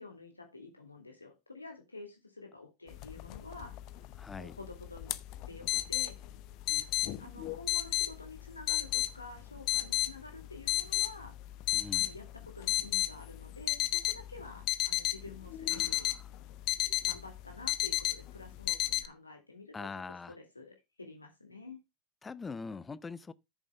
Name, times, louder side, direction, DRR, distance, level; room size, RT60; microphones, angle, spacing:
voice 1, 0.0-3.7 4.4-5.1 5.5-6.2 6.7-6.9 7.2-11.3 11.9-16.2 17.0-19.9 20.3-21.8, left 3 dB, 80° left, 2.2 m, -49 dB
sound 1, 2.9-19.1, left 16 dB, 45° left, 0.8 m, -34 dB
voice 2, 4.2-4.5 11.7-12.1 15.7-16.1 19.7-20.3 22.2-23.3, left 4 dB, 15° left, 0.7 m, -43 dB
14.0 x 7.3 x 2.2 m
figure-of-eight pair, 80°, 0 cm